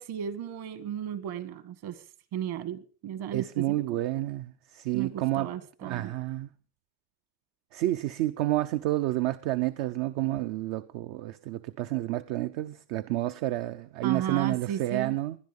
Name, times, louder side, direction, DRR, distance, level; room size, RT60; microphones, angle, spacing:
voice 1, 0.0-2.0 2.3-4.0 4.9-6.1 14.0-15.2, right 9 dB, 50° right, 2.1 m, -35 dB
voice 2, 3.3-5.5 5.8-6.5 7.7-15.4, right 16 dB, 65° right, 0.9 m, -30 dB
20.5 x 12.0 x 5.4 m
cardioid pair, 145°, 47 cm